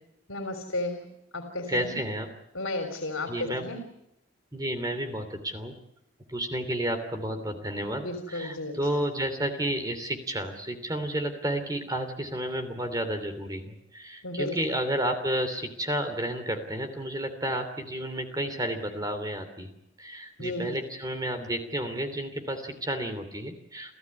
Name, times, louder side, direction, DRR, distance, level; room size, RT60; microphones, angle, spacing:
voice 1, 0.3-1.1 1.3-1.9 2.5-3.8 8.0-8.7 14.2-14.6 20.4-20.8, left 2 dB, 85° left, 5 dB, 3.4 m, -33 dB
voice 2, 1.7-2.3 3.3-3.7 4.5-5.7 6.3-19.7 20.0-23.9, right 1 dB, 20° right, 7 dB, 3.0 m, -31 dB
29.5 x 14.5 x 9.8 m, 0.82 s
head